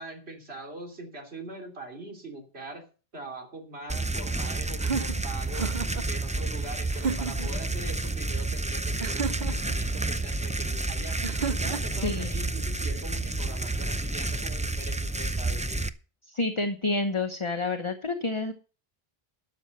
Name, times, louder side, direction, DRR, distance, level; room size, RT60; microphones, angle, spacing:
voice 1, 0.0-2.8 3.1-5.8 6.1-11.2 11.5-15.9, right 2 dB, 90° right, 2 dB, 3.2 m, -42 dB
sound 1, 3.9-15.9, right 2 dB, 10° right, 0.3 m, -30 dB
sound 2, 4.8-6.1 6.9-7.5 9.0-9.8 11.2-12.0, right 6 dB, 50° right, 0.8 m, -32 dB
voice 2, 12.0-12.4 16.3-18.5, left 3 dB, 30° left, 5 dB, 1.0 m, -29 dB
12.0 x 7.2 x 6.0 m, 0.36 s
omnidirectional pair, 1.0 m